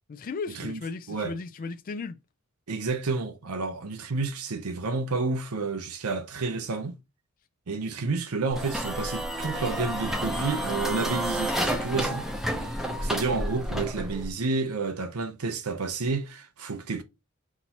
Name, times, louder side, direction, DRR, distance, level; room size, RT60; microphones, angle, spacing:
voice 1, 0.1-2.2, left 4 dB, 40° left, 0.4 m, -35 dB
voice 2, 2.7-6.9 7.7-12.3 12.6-17.0, right 3 dB, 85° right, 0.7 m, -30 dB
sound 1, 8.5-14.3, equal, ahead, 0.7 m, -30 dB
5.8 x 2.7 x 2.9 m
head